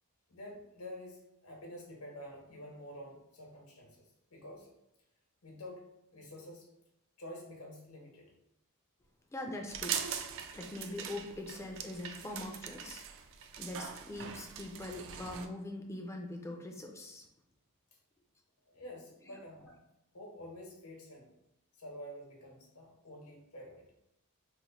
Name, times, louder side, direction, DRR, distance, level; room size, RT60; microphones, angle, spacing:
voice 1, 0.3-4.7 5.4-5.8 6.1-6.7 7.2-8.3 18.7-19.8 20.1-21.3 21.8-23.9, left 1 dB, 80° left, 0 dB, 0.9 m, -49 dB
voice 2, 9.3-10.0 10.5-13.1 13.6-17.2 19.2-19.4, left 1 dB, 15° left, 2 dB, 0.3 m, -42 dB
sound 1, 9.7-15.5, right 7 dB, 60° right, 0.3 m, -42 dB
3.0 x 2.1 x 3.9 m, 0.84 s
head